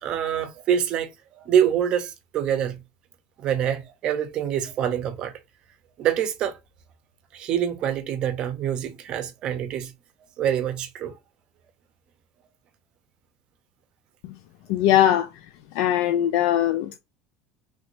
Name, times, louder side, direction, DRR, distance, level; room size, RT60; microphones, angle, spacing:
voice 1, 0.0-2.8 3.4-5.3 6.0-6.6 7.3-9.9 10.4-11.1, right 9 dB, 40° right, 0.6 m, -25 dB
voice 2, 14.7-15.3 15.8-17.0, left 12 dB, 70° left, 0.3 m, -20 dB
3.3 x 3.0 x 2.5 m
cardioid pair, 155°, 2 cm